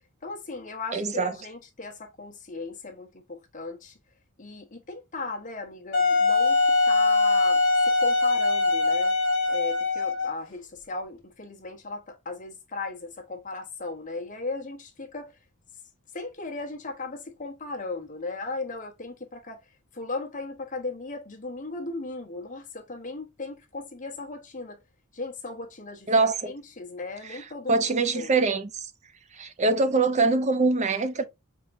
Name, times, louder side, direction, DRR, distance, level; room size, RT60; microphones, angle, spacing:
voice 1, 0.2-4.0 4.4-9.2 9.5-15.4 16.1-19.6 19.9-24.8 25.1-28.3, left 3 dB, 35° left, 1.0 m, -37 dB
voice 2, 0.9-1.3 26.1-26.5 27.3-27.4 27.7-28.9 29.3-31.3, right 3 dB, 30° right, 0.5 m, -23 dB
Wind instrument woodwind instrument, 5.9-10.4, left 3 dB, 65° left, 1.3 m, -22 dB
4.5 x 3.6 x 2.5 m
head